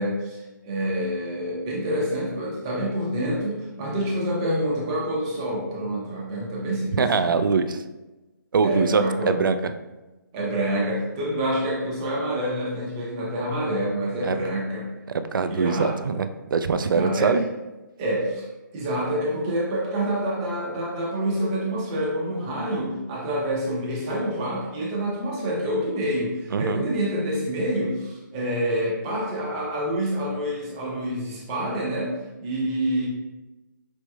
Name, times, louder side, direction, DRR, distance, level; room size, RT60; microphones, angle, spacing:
voice 1, 0.0-7.4 8.6-9.4 10.3-14.9 15.5-16.0 16.8-17.3 18.0-18.5 18.7-32.1 32.4-33.1, right 1 dB, 20° right, -4 dB, 0.7 m, -27 dB
voice 2, 7.0-7.8 8.5-9.7 14.2-14.4 15.3-17.4 26.5-26.8, right 5 dB, 85° right, 10 dB, 0.4 m, -23 dB
5.1 x 3.1 x 2.3 m, 1.1 s
hypercardioid pair, 165°, 11 cm